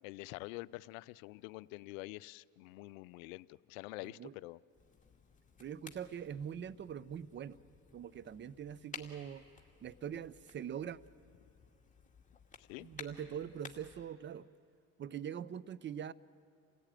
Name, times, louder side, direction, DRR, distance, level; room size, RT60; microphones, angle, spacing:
voice 1, 0.0-4.6 12.6-12.9, left 20 dB, 70° left, 19 dB, 0.6 m, -47 dB
sound 1, 4.7-14.0, left 5 dB, 15° left, 2.3 m, -55 dB
voice 2, 5.6-7.6 7.9-9.4 9.8-11.0 12.8-14.5 15.0-16.1, right 8 dB, 25° right, 22 dB, 0.6 m, -43 dB
28.5 x 16.0 x 9.0 m, 2.5 s
hypercardioid pair, 80°, 42 cm